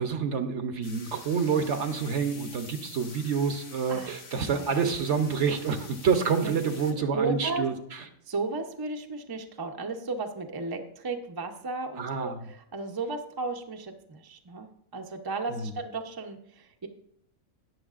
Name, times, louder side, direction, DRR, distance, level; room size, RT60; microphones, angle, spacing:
voice 1, 0.0-8.1 12.0-12.4 15.5-15.8, right 6 dB, 60° right, 8 dB, 1.0 m, -28 dB
sound 1, 0.8-6.9, left 4 dB, 70° left, 1.7 m, -47 dB
voice 2, 3.9-4.7 6.4-6.5 7.1-7.7 8.3-16.9, right 3 dB, 25° right, 4 dB, 0.5 m, -34 dB
19.0 x 6.5 x 2.5 m, 0.72 s
omnidirectional pair, 1.5 m